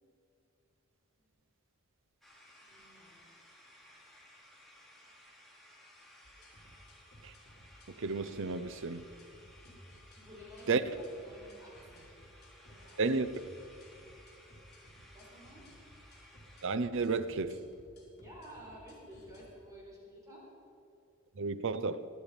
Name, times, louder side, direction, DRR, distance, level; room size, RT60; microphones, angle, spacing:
sound 1, 2.2-16.7, left 1 dB, ahead, 2.7 m, -59 dB
voice 1, 2.6-3.2 10.1-12.2 12.7-13.1 15.0-15.7 18.0-20.6, equal, 15° right, 4.5 m, -53 dB
sound 2, 6.2-19.4, equal, 50° left, 4.2 m, -58 dB
voice 2, 7.9-9.0 10.7-10.8 13.0-13.3 16.6-17.6 21.4-22.1, right 4 dB, 65° right, 0.7 m, -32 dB
23.0 x 10.0 x 5.2 m
head